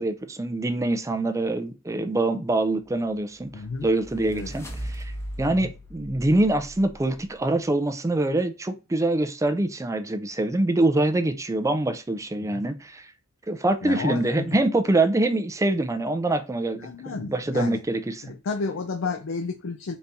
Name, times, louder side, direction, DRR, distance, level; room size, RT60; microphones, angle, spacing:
voice 1, 0.0-3.5 3.8-4.7 5.0-5.1 5.4-13.1 13.5-18.2, right 2 dB, 15° right, 0.4 m, -24 dB
sound 1, 3.1-7.4, equal, 15° left, 0.8 m, -38 dB
voice 2, 3.5-3.9 4.3-4.5 5.5-5.7 12.4-12.6 13.8-14.5 16.8-17.8 18.2-19.9, left 4 dB, 70° left, 0.5 m, -32 dB
4.1 x 2.7 x 3.4 m
head